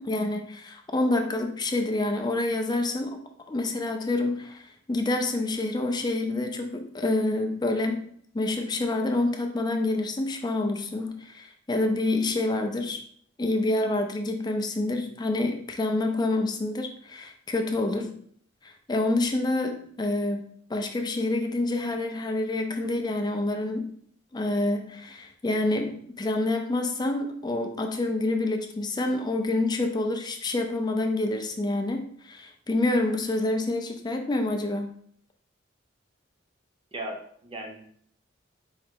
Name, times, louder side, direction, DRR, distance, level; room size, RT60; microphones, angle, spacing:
voice 1, 0.0-13.0 13.4-18.2 18.6-24.0 24.3-34.9, left 2 dB, 20° left, 4 dB, 0.4 m, -27 dB
voice 2, 36.9-37.9, right 1 dB, 25° right, 1 dB, 0.7 m, -37 dB
4.8 x 2.0 x 4.4 m, 0.62 s
head